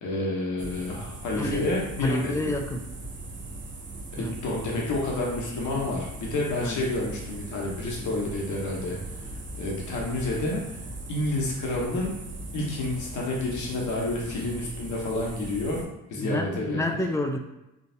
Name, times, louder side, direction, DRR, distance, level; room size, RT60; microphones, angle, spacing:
voice 1, 0.0-2.6 4.2-9.0 9.6-10.6 11.1-12.1 12.5-17.0, left 2 dB, 75° left, -3 dB, 1.0 m, -29 dB
sound 1, 0.6-15.9, right 2 dB, 40° right, 0.7 m, -39 dB
voice 2, 1.4-1.7 2.0-2.9 4.2-4.3 6.6-6.9 16.2-17.4, left 1 dB, 10° left, 4 dB, 0.3 m, -29 dB
3.8 x 2.4 x 2.7 m, 0.94 s
cardioid pair, 90°, 30 cm